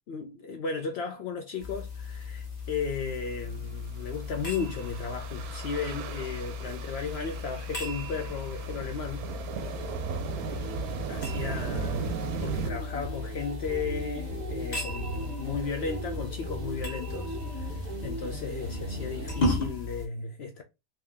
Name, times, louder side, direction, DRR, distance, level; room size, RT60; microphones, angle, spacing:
voice 1, 0.1-9.2 10.5-10.7 11.1-20.6, left 5 dB, 75° left, 0.5 m, -35 dB
sound 1, 1.6-20.1, left 3 dB, 30° left, 0.9 m, -37 dB
sound 2, 3.8-12.7, right 7 dB, 75° right, 1.0 m, -37 dB
sound 3, 9.6-19.4, right 2 dB, 55° right, 0.4 m, -38 dB
3.5 x 2.7 x 3.4 m
omnidirectional pair, 1.7 m